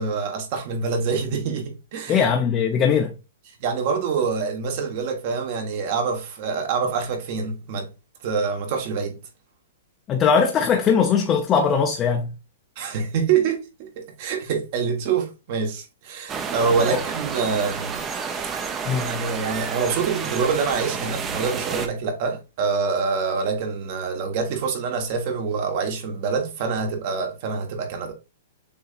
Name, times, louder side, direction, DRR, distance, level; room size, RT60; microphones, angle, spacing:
voice 1, 0.0-2.3 3.6-7.9 8.2-9.2 12.8-18.1 18.3-18.6 18.9-28.1, right 5 dB, 50° right, 1.2 m, -26 dB
voice 2, 2.1-3.1 10.1-12.3 16.9-17.0 18.8-19.1, left 6 dB, 25° left, 0.6 m, -20 dB
sound 1, 16.3-21.9, right 6 dB, 20° right, 0.6 m, -30 dB
6.9 x 2.7 x 2.5 m
hypercardioid pair, 140°, 0 cm